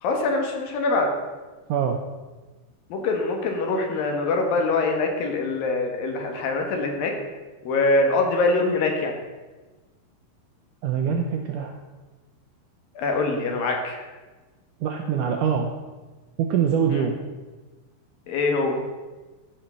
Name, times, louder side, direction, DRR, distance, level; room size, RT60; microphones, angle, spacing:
voice 1, 0.0-1.1 2.9-7.1 7.6-9.2 13.0-14.1 16.9-17.1 18.3-18.8, left 3 dB, 70° left, 3 dB, 3.0 m, -24 dB
voice 2, 1.7-2.0 10.8-11.7 14.8-15.7 16.4-17.2, right 7 dB, 75° right, 3 dB, 1.9 m, -24 dB
13.5 x 5.7 x 6.8 m, 1.2 s
omnidirectional pair, 4.5 m